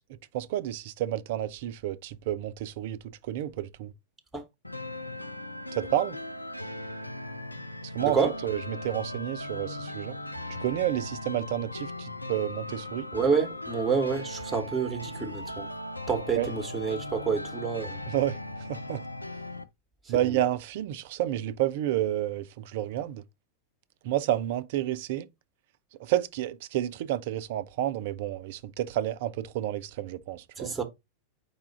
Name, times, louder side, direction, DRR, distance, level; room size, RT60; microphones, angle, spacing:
voice 1, 0.3-3.9 5.7-6.2 7.8-8.2 8.4-10.2 10.5-13.1 16.4-16.5 18.1-19.0 20.1-23.2 24.0-25.3 26.0-30.7, right 12 dB, 50° right, 0.4 m, -30 dB
sound 1, 4.6-19.6, left 1 dB, 85° left, 0.4 m, -38 dB
voice 2, 8.0-8.3 13.1-15.7 16.1-18.0 20.0-20.2 30.6-30.8, right 5 dB, 10° right, 1.0 m, -28 dB
4.8 x 2.4 x 4.4 m
figure-of-eight pair, 90°, 0 cm